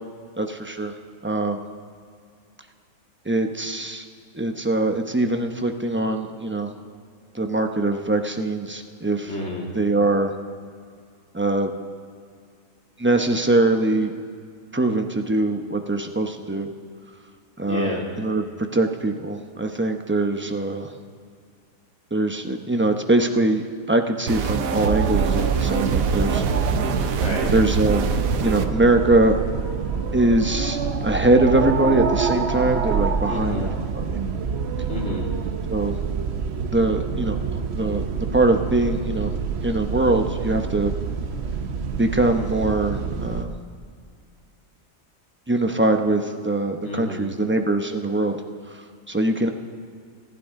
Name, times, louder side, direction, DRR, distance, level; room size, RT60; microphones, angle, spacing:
voice 1, 0.4-0.9 1.2-1.6 3.3-4.0 4.3-6.7 7.3-9.3 9.7-10.3 11.3-11.7 13.0-14.1 14.7-16.7 17.6-20.9 22.1-26.4 26.8-27.1 27.5-28.1 28.4-29.4 30.1-30.8 31.0-33.7 33.9-34.2 35.7-36.0 36.7-38.0 38.3-39.3 39.6-40.9 42.0-43.5 45.5-48.3 49.1-49.5, right 2 dB, 10° right, 5 dB, 0.6 m, -22 dB
voice 2, 9.3-9.7 17.7-18.0 27.2-27.5 33.3-33.7 34.9-35.3 46.9-47.3, left 1 dB, 55° left, -3 dB, 3.0 m, -29 dB
sound 1, 24.3-28.7, right 6 dB, 90° right, 1.3 m, -25 dB
sound 2, 24.8-43.5, right 5 dB, 55° right, 1.0 m, -27 dB
25.5 x 12.0 x 3.7 m, 2.2 s
omnidirectional pair, 1.4 m